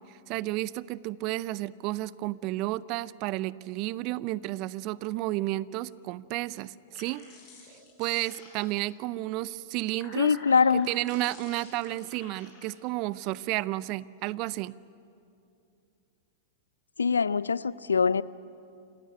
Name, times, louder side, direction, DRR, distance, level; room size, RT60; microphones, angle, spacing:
voice 1, 0.0-7.2 8.0-10.3 10.7-14.7, right 17 dB, 45° right, 20 dB, 0.6 m, -32 dB
sound 1, 6.8-9.0 9.7-12.7, left 4 dB, 40° left, 7.2 m, -50 dB
voice 2, 10.2-10.9 17.0-18.2, left 5 dB, 80° left, 20 dB, 0.5 m, -23 dB
28.5 x 16.5 x 9.7 m, 2.6 s
figure-of-eight pair, 100°, 0 cm